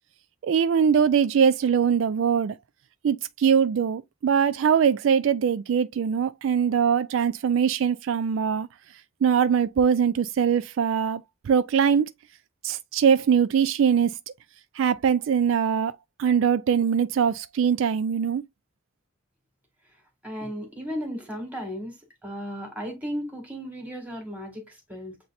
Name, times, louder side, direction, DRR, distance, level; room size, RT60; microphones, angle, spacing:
voice 1, 0.4-2.5 3.0-8.7 9.2-12.1 12.6-14.2 14.8-15.9 16.2-18.4, right 7 dB, 70° right, 0.3 m, -22 dB
voice 2, 20.2-21.9 22.2-25.2, equal, 5° right, 1.8 m, -35 dB
7.6 x 2.7 x 2.5 m
head